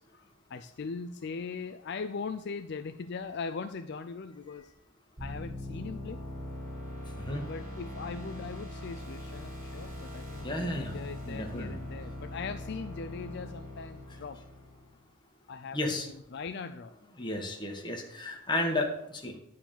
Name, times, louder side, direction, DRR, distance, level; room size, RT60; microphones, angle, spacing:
voice 1, 0.0-4.7 5.2-6.2 7.4-14.4 15.5-16.9, left 5 dB, 55° left, 8 dB, 0.5 m, -40 dB
sound 1, 5.2-15.0, left 1 dB, 45° right, 4.4 m, -41 dB
voice 2, 10.4-11.7 15.7-16.1 17.2-19.3, left 1 dB, 25° left, 1 dB, 1.7 m, -33 dB
11.0 x 4.8 x 7.2 m, 0.78 s
head